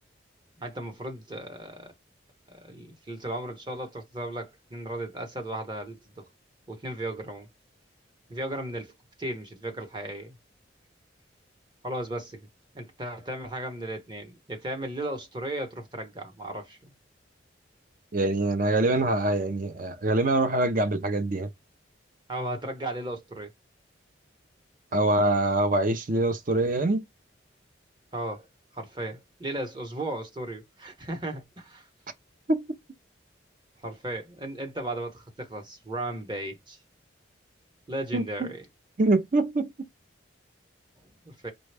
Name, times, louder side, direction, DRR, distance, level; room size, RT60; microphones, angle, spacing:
voice 1, 0.6-1.9 2.5-6.3 6.7-7.5 8.3-8.9 9.2-10.4 11.8-12.4 12.7-16.9 22.3-23.5 28.1-28.5 28.7-31.9 33.8-36.8 37.9-38.6 41.0-41.5, right 1 dB, 25° right, 0.9 m, -35 dB
voice 2, 18.1-21.5 24.9-27.0 32.5-32.6 38.1-38.5 39.0-39.7, right 2 dB, 45° right, 0.5 m, -24 dB
5.0 x 2.2 x 3.3 m
head